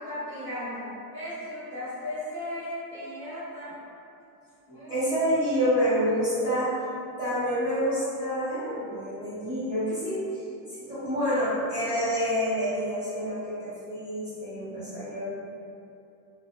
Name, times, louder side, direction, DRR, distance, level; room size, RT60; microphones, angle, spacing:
voice 1, 0.0-3.8 4.7-4.9 14.5-15.3, left 1 dB, 20° left, -17 dB, 1.0 m, -37 dB
voice 2, 4.9-6.7 7.2-10.2 10.8-15.3, equal, 10° right, -17 dB, 1.2 m, -27 dB
2.3 x 2.1 x 2.9 m, 2.6 s
supercardioid pair, 165°, 50 cm